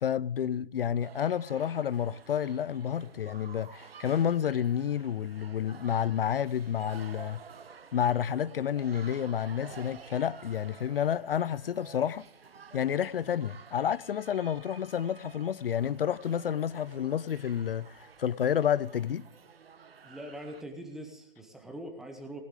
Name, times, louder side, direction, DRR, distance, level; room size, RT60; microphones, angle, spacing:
voice 1, 0.0-7.4 7.9-12.3 12.7-19.3, left 9 dB, 70° left, 0.6 m, -30 dB
sound 1, 1.0-20.6, right 6 dB, 85° right, 1.4 m, -51 dB
voice 2, 20.0-22.4, right 1 dB, ahead, 0.7 m, -42 dB
19.0 x 11.0 x 3.6 m
hypercardioid pair, 160°, 29 cm